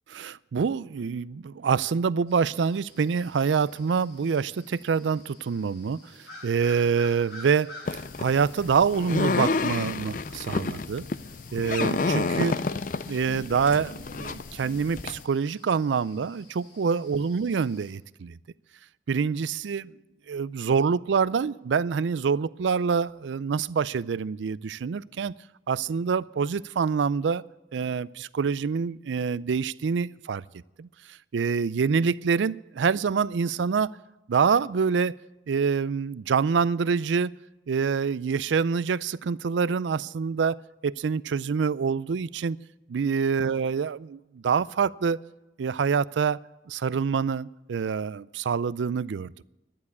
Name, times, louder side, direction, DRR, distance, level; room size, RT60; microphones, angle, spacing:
voice 1, 0.1-6.0 6.4-7.7 8.2-11.1 11.5-12.6 13.0-18.4 19.1-19.9 20.3-25.3 25.7-27.4 27.7-30.4 30.8-30.9 31.3-33.9 34.3-35.1 35.5-37.3 37.7-40.6 40.8-42.6 42.9-45.2 45.6-46.4 46.7-49.3, right 6 dB, 90° right, 20 dB, 0.4 m, -26 dB
sound 1, 2.3-17.9, left 1 dB, 70° left, 6.8 m, -51 dB
sound 2, 7.8-15.2, left 3 dB, 45° left, 0.5 m, -30 dB
12.0 x 10.5 x 8.4 m, 1.0 s
head